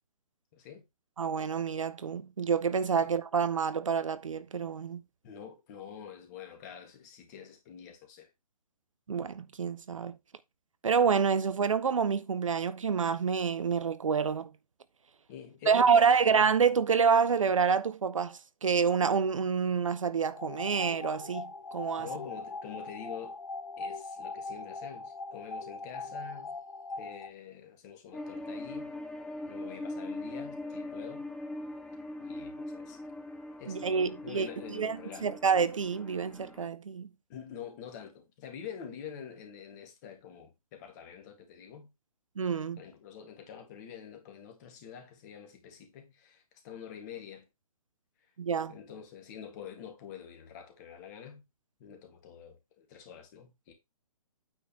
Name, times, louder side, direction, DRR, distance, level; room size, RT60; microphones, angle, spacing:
voice 1, 0.5-0.8 3.0-3.1 5.2-8.3 15.3-16.3 22.0-23.4 23.8-26.5 27.0-28.9 29.5-31.2 32.2-33.0 33.6-35.3 37.3-41.9 42.8-47.5 48.7-51.4 51.8-53.7, left 8 dB, 30° left, 2.0 m, -46 dB
voice 2, 1.2-5.0 9.1-10.1 10.8-14.5 15.7-22.1 33.7-37.1 42.4-42.8 48.4-48.7, right 6 dB, 60° right, 0.7 m, -28 dB
sound 1, 20.3-27.3, left 3 dB, 65° left, 1.2 m, -41 dB
sound 2, 28.1-36.7, left 2 dB, 5° left, 0.5 m, -41 dB
8.9 x 4.0 x 4.4 m
figure-of-eight pair, 130°, 19 cm